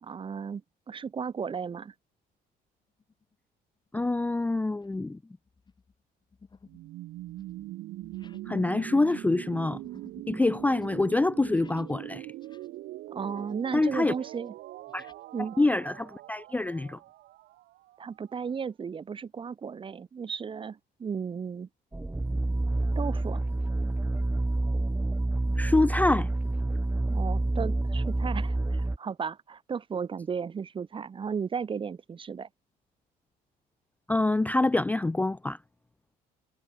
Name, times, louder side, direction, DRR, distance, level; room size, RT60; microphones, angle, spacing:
voice 1, 0.0-0.6 0.9-1.9 13.1-14.5 15.3-15.6 18.0-21.7 22.9-23.4 27.1-32.5, right 6 dB, 30° right, 1.0 m, -35 dB
sound 1, 3.0-3.3 3.9-4.1 4.7-5.2 5.4-12.0 12.3-13.7 14.0-15.2, left 4 dB, 25° left, 7.8 m, -56 dB
voice 2, 3.9-5.2 8.5-9.8 10.3-12.3 13.7-14.1 14.9-15.1 15.6-17.0 25.6-26.3 34.1-35.6, left 2 dB, 10° left, 0.4 m, -26 dB
sound 2, 6.7-18.5, right 16 dB, 80° right, 7.8 m, -42 dB
sound 3, 21.9-29.0, right 2 dB, 10° right, 1.7 m, -28 dB
cardioid pair, 110°, 17 cm